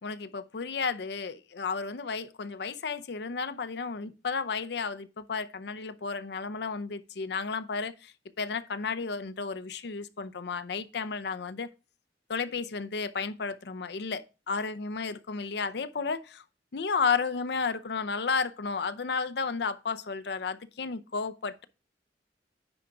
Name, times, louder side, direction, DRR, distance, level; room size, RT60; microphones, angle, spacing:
voice 1, 0.0-11.7 12.3-16.4 16.7-21.6, left 5 dB, 65° left, 0.6 m, -33 dB
9.8 x 4.7 x 3.8 m
head